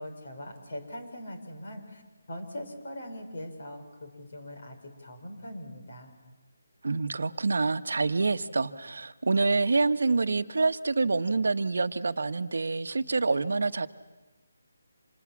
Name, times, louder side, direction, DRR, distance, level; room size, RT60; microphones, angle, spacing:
voice 1, 0.0-2.0 2.3-6.1, left 1 dB, 40° left, 4 dB, 5.0 m, -41 dB
voice 2, 6.8-13.9, right 3 dB, 60° right, 12 dB, 1.2 m, -27 dB
29.5 x 27.0 x 7.3 m, 1.1 s
hypercardioid pair, 180°, 0 cm